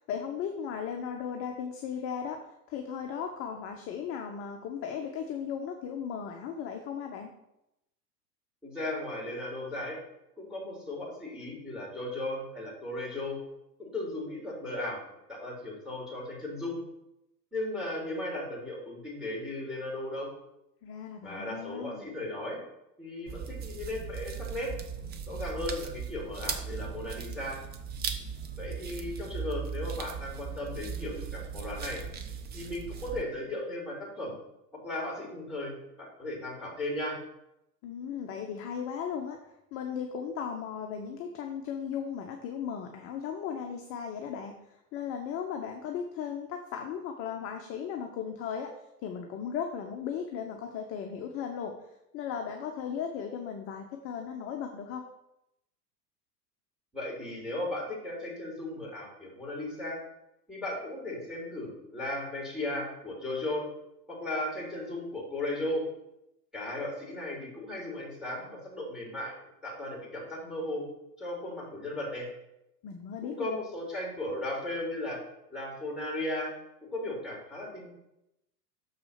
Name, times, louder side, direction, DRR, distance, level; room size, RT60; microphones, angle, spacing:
voice 1, 0.0-2.4 2.7-7.3 20.8-22.1 37.8-39.4 39.7-44.6 44.9-48.7 49.0-51.7 52.1-55.0 72.8-73.6, left 7 dB, 25° left, 3 dB, 0.7 m, -36 dB
voice 2, 8.6-10.0 10.4-13.4 13.8-15.0 15.3-16.8 17.5-20.3 21.2-22.6 23.0-24.7 25.3-27.6 28.6-32.0 32.5-34.3 34.8-35.7 36.2-37.2 56.9-60.0 60.5-63.7 64.1-65.8 66.5-69.3 69.6-70.8 71.2-72.3 73.2-75.2 75.5-76.5 76.8-77.9, left 1 dB, ahead, -2 dB, 3.1 m, -36 dB
sound 1, 23.3-33.2, right 6 dB, 20° right, 0.7 m, -38 dB
6.5 x 4.8 x 5.6 m, 0.86 s
figure-of-eight pair, 95°, 50 cm